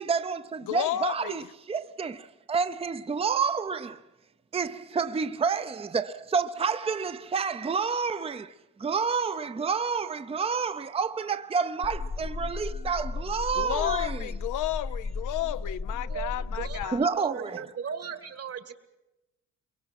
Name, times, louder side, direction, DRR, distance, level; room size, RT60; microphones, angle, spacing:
voice 1, 0.0-4.0 4.5-8.5 8.8-14.3 16.9-17.6, right 5 dB, 20° right, 0.6 m, -29 dB
voice 2, 0.7-1.5 13.6-17.0, left 14 dB, 85° left, 0.7 m, -32 dB
sound 1, 11.8-16.8, left 3 dB, 30° left, 0.8 m, -34 dB
voice 3, 16.1-18.7, right 7 dB, 55° right, 1.8 m, -38 dB
23.5 x 23.0 x 6.0 m
cardioid pair, 90°, 30 cm